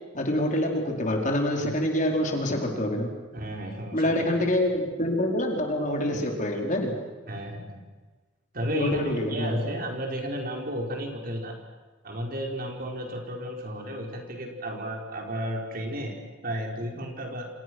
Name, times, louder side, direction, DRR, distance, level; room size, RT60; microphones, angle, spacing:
voice 1, 0.1-3.1 3.9-6.9 8.7-9.6, left 1 dB, 40° left, 1 dB, 4.7 m, -26 dB
voice 2, 3.3-4.5 7.3-7.8 8.5-9.0 9.3-11.6 12.0-16.1 16.4-17.5, equal, 45° right, 2 dB, 4.8 m, -33 dB
29.5 x 27.0 x 6.3 m, 1.3 s
head